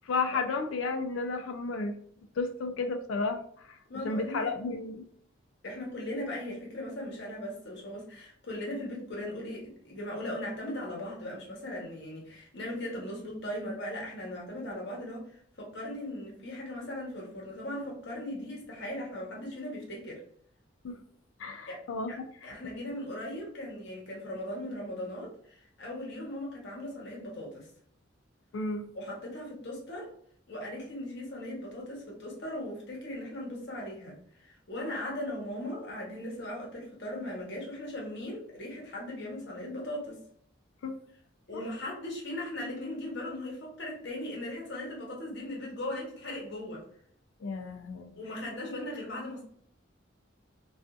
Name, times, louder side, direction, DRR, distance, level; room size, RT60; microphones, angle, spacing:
voice 1, 0.0-2.0 2.4-3.8 4.0-5.0 20.8-21.0 21.4-22.1 22.4-22.5 28.5-28.9 40.8-40.9 41.5-41.6 47.4-48.1, left 3 dB, 75° left, 7 dB, 0.4 m, -32 dB
voice 2, 3.9-4.5 5.6-20.2 21.7-27.7 28.9-30.1 30.5-40.2 41.5-46.8 48.2-49.4, left 1 dB, 60° left, -2 dB, 0.9 m, -38 dB
2.5 x 2.4 x 2.3 m, 0.64 s
head